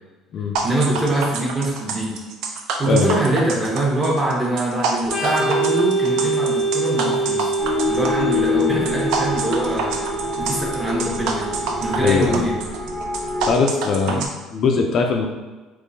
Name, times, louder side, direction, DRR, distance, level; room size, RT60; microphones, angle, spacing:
sound 1, 0.5-14.3, right 4 dB, 65° right, 0.4 m, -27 dB
voice 1, 0.6-2.1 2.8-7.5 7.9-10.0 10.4-11.5 11.8-12.5 14.1-14.2, right 1 dB, 20° right, -3 dB, 0.8 m, -23 dB
voice 2, 2.9-3.2 12.0-12.4 13.5-14.2 14.5-15.3, left 5 dB, 40° left, 2 dB, 0.3 m, -20 dB
Organ, 5.0-12.5, right 3 dB, 15° left, 0.7 m, -25 dB
sound 2, 7.6-13.5, left 4 dB, 35° right, 1.1 m, -26 dB
3.6 x 3.0 x 2.6 m, 1.2 s
cardioid pair, 160°, 0 cm